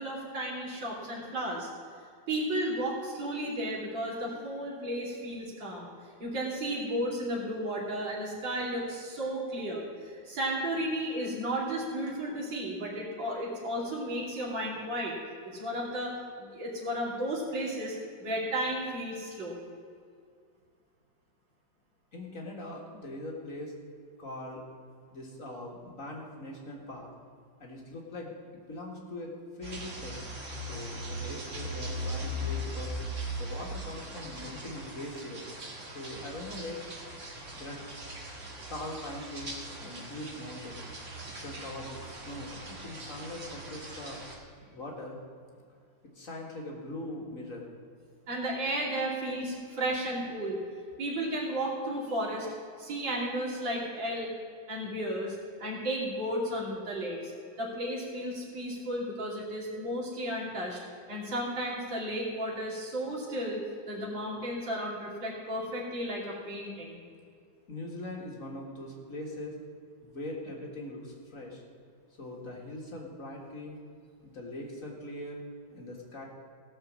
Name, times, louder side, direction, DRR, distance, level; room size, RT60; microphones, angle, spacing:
voice 1, 0.0-1.7 2.3-15.2 15.4-19.6 48.3-50.6 51.0-52.5 52.8-54.3 54.7-57.3 57.6-60.8 61.1-67.0, right 1 dB, 75° right, -4 dB, 3.5 m, -33 dB
voice 2, 22.1-23.7 24.2-24.6 25.1-27.1 27.6-30.2 30.7-32.9 33.4-35.5 35.9-36.9 37.5-37.8 38.7-39.6 39.8-40.9 41.4-44.2 44.7-45.2 46.1-47.7 67.7-69.6 70.0-71.6 72.2-73.8 74.2-75.4 75.7-76.2, left 1 dB, 45° left, -1 dB, 2.0 m, -41 dB
sound 1, 29.6-44.4, equal, 40° right, 1.9 m, -40 dB
16.5 x 6.1 x 7.4 m, 2.3 s
omnidirectional pair, 2.1 m